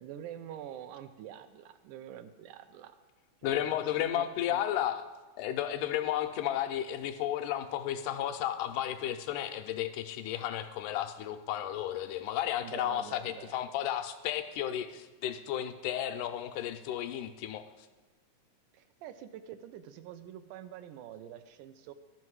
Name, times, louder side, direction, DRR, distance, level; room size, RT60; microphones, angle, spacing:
voice 1, 0.0-3.0 3.4-4.8 12.6-13.7 18.7-21.9, right 10 dB, 85° right, 10 dB, 2.1 m, -46 dB
voice 2, 3.4-5.0 5.4-17.6, left 11 dB, 90° left, 8 dB, 2.1 m, -33 dB
12.0 x 5.8 x 4.7 m, 1.2 s
omnidirectional pair, 3.6 m